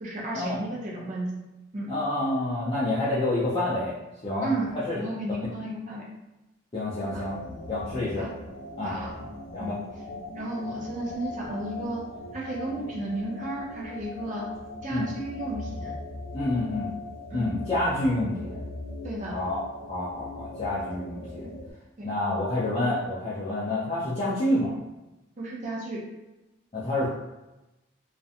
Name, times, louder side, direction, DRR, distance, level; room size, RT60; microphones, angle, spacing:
voice 1, 0.0-1.3 1.7-1.9 4.4-6.0 7.1-7.2 8.2-8.3 8.8-9.1 9.6-9.8 10.3-12.0 12.3-14.5 14.8-15.9 17.3-17.4 19.0-19.4 22.0-22.1 25.4-26.0, right 1 dB, 40° right, -3 dB, 0.5 m, -33 dB
voice 2, 1.9-3.9 4.2-5.0 5.4-5.5 6.7-7.4 7.7-8.3 8.8-8.9 9.2-9.3 9.5-9.8 14.9-15.1 16.3-16.9 17.3-18.6 19.3-19.6 19.9-21.5 22.0-24.7 26.7-27.1, left 1 dB, 30° left, -10 dB, 0.4 m, -28 dB
sound 1, 7.1-21.7, left 2 dB, 80° left, 0.5 m, -40 dB
2.4 x 2.1 x 2.7 m, 1.0 s
head